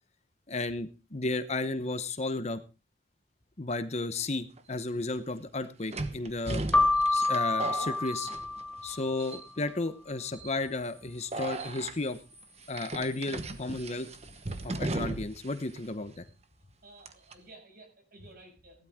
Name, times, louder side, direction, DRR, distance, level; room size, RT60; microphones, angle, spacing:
voice 1, 0.5-2.6 3.6-6.6 7.1-8.3 8.8-12.2 12.7-14.1 14.6-16.3, left 2 dB, 35° left, 11 dB, 0.9 m, -33 dB
sound 1, 4.6-4.7 5.9-8.9 9.2-9.7 10.3-10.6 11.3-11.9 12.7-15.5 15.7-15.8 17.0-17.3, right 2 dB, 35° right, 1.1 m, -36 dB
Keyboard (musical), 6.7-9.3, left 2 dB, 5° left, 0.6 m, -28 dB
sound 2, 10.6-16.0, right 3 dB, 70° right, 7.3 m, -59 dB
voice 2, 16.8-18.9, right 2 dB, 55° right, 4 dB, 6.6 m, -54 dB
16.0 x 12.0 x 3.7 m, 0.30 s
head